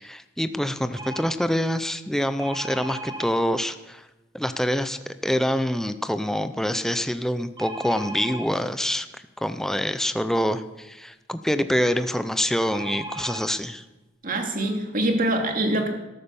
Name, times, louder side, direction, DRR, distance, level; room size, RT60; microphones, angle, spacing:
voice 1, 0.0-4.0 4.3-13.8, equal, ahead, 10 dB, 0.6 m, -26 dB
sound 1, 1.0-1.3 2.4-3.3 7.6-8.5 12.7-13.4 14.2-14.3 14.6-14.8, right 2 dB, 25° right, 1.9 m, -36 dB
voice 2, 14.2-15.9, right 1 dB, 50° right, 3 dB, 2.4 m, -24 dB
13.0 x 12.0 x 7.0 m, 1.0 s
head